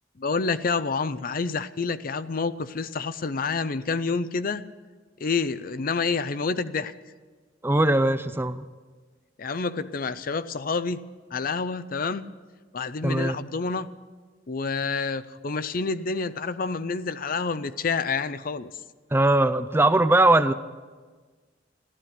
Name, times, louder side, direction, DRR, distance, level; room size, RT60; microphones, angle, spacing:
voice 1, 0.2-4.6 5.2-6.9 9.4-11.0 11.3-12.3 12.7-13.9 14.5-18.7, left 4 dB, 50° left, 14 dB, 0.5 m, -28 dB
voice 2, 7.6-8.6 13.0-13.3 19.1-20.5, right 2 dB, 10° right, 12 dB, 0.5 m, -20 dB
15.0 x 11.5 x 8.0 m, 1.4 s
head